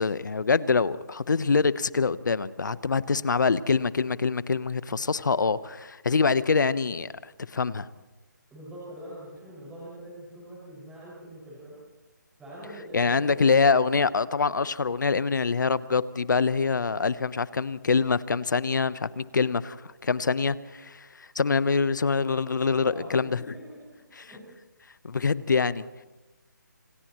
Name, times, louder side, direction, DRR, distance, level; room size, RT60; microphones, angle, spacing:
voice 1, 0.0-7.9 12.9-23.5 24.2-24.3 25.0-25.8, left 4 dB, 70° left, 1.0 m, -25 dB
voice 2, 8.5-11.8 12.4-13.3 22.8-23.8 24.1-24.5, right 1 dB, 5° right, 6.0 m, -44 dB
29.5 x 27.5 x 3.1 m
hypercardioid pair, 160°, 10 cm